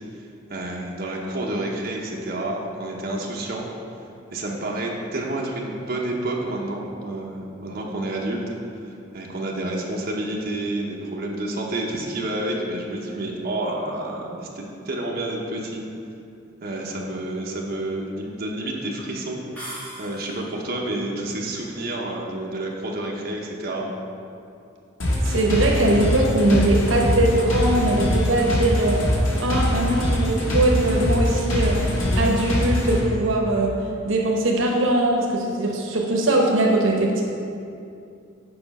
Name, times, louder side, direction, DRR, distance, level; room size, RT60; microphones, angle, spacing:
voice 1, 0.5-3.7 4.3-8.6 9.1-15.8 16.6-19.4 20.0-23.9, right 1 dB, 50° right, -2 dB, 0.9 m, -29 dB
sound 1, 19.6-20.6, right 1 dB, 10° left, 1.8 m, -38 dB
sound 2, 25.0-33.0, left 1 dB, 80° left, 1.5 m, -23 dB
voice 2, 25.2-29.0 29.4-33.8 34.0-37.2, right 1 dB, 85° right, 0 dB, 0.9 m, -21 dB
6.8 x 5.0 x 5.3 m, 2.6 s
head